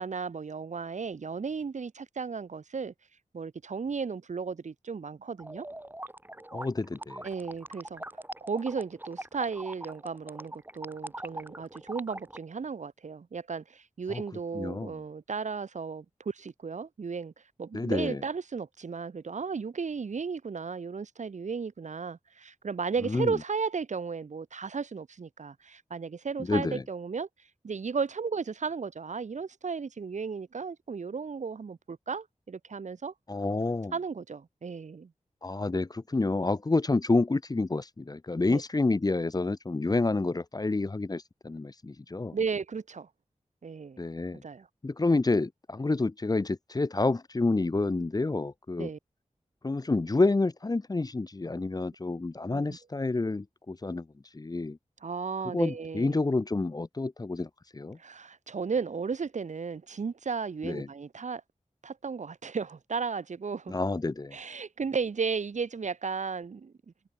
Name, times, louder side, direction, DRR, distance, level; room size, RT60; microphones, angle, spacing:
voice 1, 0.0-2.9 3.3-5.7 7.2-8.0 8.5-17.3 17.6-27.3 27.6-33.1 33.9-35.1 38.5-38.6 42.3-43.1 43.6-44.0 44.4-44.7 48.8-49.0 52.5-52.8 55.0-56.2 58.0-61.4 61.8-63.7 64.3-66.7, right 5 dB, 70° right, 1.0 m, -34 dB
sound 1, 5.4-12.4, right 1 dB, 15° right, 1.9 m, -42 dB
voice 2, 6.5-7.2 14.1-14.2 14.5-15.0 17.7-18.2 23.1-23.4 26.4-26.8 33.3-33.9 35.4-42.4 44.0-44.4 44.8-48.9 49.6-54.1 54.3-54.8 55.5-58.0 60.6-60.9 63.7-64.4, left 3 dB, 30° left, 0.7 m, -29 dB
wide cardioid pair, 70°, 13 cm